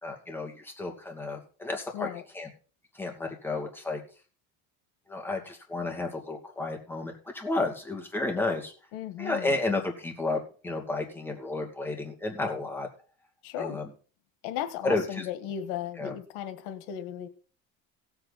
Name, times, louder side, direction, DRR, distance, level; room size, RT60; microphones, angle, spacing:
voice 1, 0.0-2.1 2.3-2.5 2.9-4.0 5.1-8.7 9.2-12.9 13.6-13.9 14.8-15.3 16.0-16.1, left 2 dB, 5° left, 0 dB, 2.5 m, -32 dB
voice 2, 8.9-9.5 13.4-13.8 14.4-17.3, left 10 dB, 85° left, 10 dB, 1.6 m, -36 dB
17.0 x 8.2 x 4.1 m, 0.38 s
cardioid pair, 140°, 33 cm